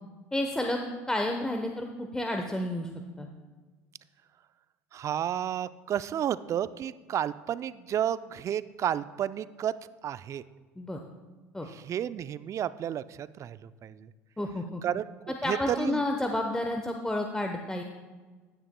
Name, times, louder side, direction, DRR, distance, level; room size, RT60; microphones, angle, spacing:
voice 1, 0.3-2.9 3.2-3.3 10.8-11.0 11.5-11.7 14.4-14.8 15.3-17.8, left 1 dB, 10° left, 3 dB, 0.9 m, -30 dB
voice 2, 4.9-9.7 10.0-10.4 11.6-14.1 14.8-15.0 15.4-16.0, right 10 dB, 40° right, 16 dB, 0.4 m, -31 dB
15.0 x 10.0 x 2.2 m, 1.3 s
hypercardioid pair, 70°, 8 cm